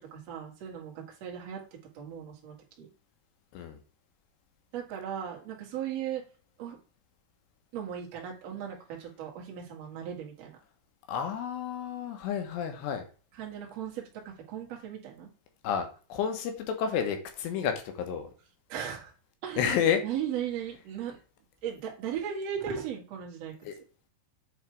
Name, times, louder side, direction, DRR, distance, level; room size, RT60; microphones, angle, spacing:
voice 1, 0.1-1.6 1.9-2.9 4.7-6.2 6.6-6.8 7.7-10.6 13.3-15.3 18.7-19.1 19.4-21.2 21.6-23.5, right 9 dB, 45° right, -1 dB, 2.4 m, -37 dB
voice 2, 11.1-13.1 15.6-18.3 19.6-20.0 23.7-23.8, left 7 dB, 75° left, 6 dB, 3.3 m, -30 dB
8.4 x 4.2 x 4.6 m, 0.37 s
omnidirectional pair, 5.1 m